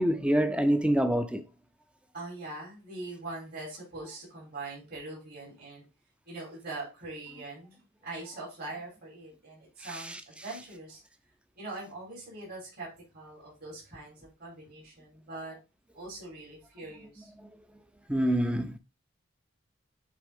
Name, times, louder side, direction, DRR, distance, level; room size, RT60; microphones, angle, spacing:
voice 1, 0.0-1.4 18.1-18.8, equal, 5° right, 0.6 m, -25 dB
voice 2, 2.1-5.8 6.3-11.0 11.6-15.6 15.9-17.3, right 2 dB, 50° right, 3.7 m, -42 dB
8.4 x 3.7 x 3.6 m
head